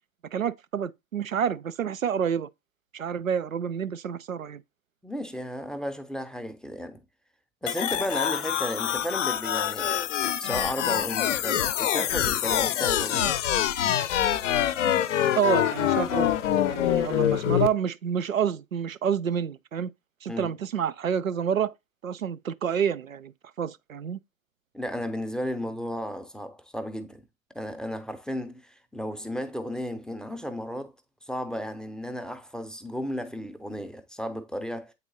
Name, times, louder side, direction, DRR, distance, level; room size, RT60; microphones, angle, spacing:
voice 1, 0.3-2.5 2.9-4.6 15.4-16.3 16.7-19.9 20.2-21.7 22.0-23.3 23.6-24.2, right 8 dB, 85° right, 0.5 m, -28 dB
voice 2, 5.0-7.0 7.6-13.4 20.3-20.5 24.7-27.2 27.5-30.9 31.2-34.9, equal, ahead, 0.5 m, -34 dB
sound 1, 7.7-17.7, left 11 dB, 65° left, 0.7 m, -25 dB
8.6 x 4.1 x 2.7 m
figure-of-eight pair, 85°, 39 cm